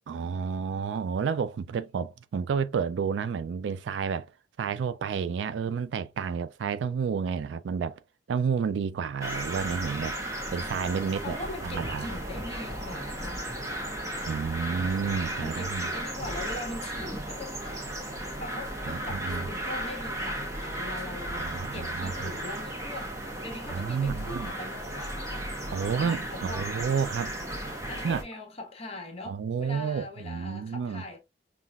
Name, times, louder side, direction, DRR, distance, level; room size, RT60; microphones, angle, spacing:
voice 1, 0.1-4.3 4.6-8.0 8.3-10.1 10.5-11.4 11.6-12.1 14.2-15.9 18.9-19.5 21.3-22.3 23.7-24.5 25.7-27.4 28.0-28.2 29.3-31.0, right 6 dB, 75° right, 0.3 m, -30 dB
sound 1, 9.2-28.2, right 1 dB, 20° right, 0.9 m, -35 dB
voice 2, 11.2-13.6 15.4-17.6 18.4-25.5 25.9-26.7 27.9-31.2, left 2 dB, 35° left, 1.1 m, -41 dB
5.6 x 2.4 x 2.3 m
head